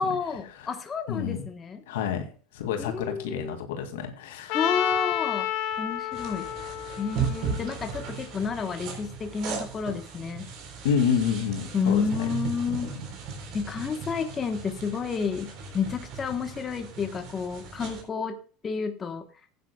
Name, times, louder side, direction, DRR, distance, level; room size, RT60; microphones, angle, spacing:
voice 1, 0.0-1.8 2.8-3.6 4.5-5.5 5.8-6.5 7.0-10.5 11.7-12.9 13.5-19.2, left 5 dB, 25° left, 6 dB, 1.1 m, -30 dB
voice 2, 1.1-1.4 1.9-2.3 2.5-4.6 10.8-12.3 12.7-13.0, left 7 dB, 90° left, 5 dB, 2.3 m, -28 dB
Trumpet, 4.5-8.5, left 12 dB, 65° left, 1.5 m, -31 dB
sound 1, 6.1-18.0, right 6 dB, 55° right, 3.7 m, -37 dB
15.5 x 9.3 x 2.3 m, 0.39 s
supercardioid pair, 120°, 0 cm